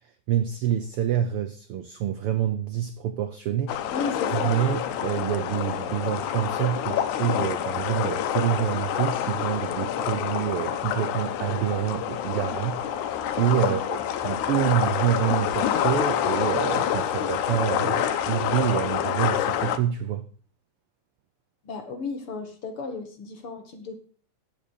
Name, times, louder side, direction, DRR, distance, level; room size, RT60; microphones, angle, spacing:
voice 1, 0.3-4.0 4.3-20.3, right 10 dB, 75° right, 1.3 m, -27 dB
sound 1, 3.7-19.8, left 10 dB, 90° left, 2.3 m, -27 dB
voice 2, 3.9-4.5 13.6-13.7 21.6-24.0, left 4 dB, 55° left, 2.1 m, -34 dB
8.8 x 8.1 x 6.4 m
omnidirectional pair, 3.4 m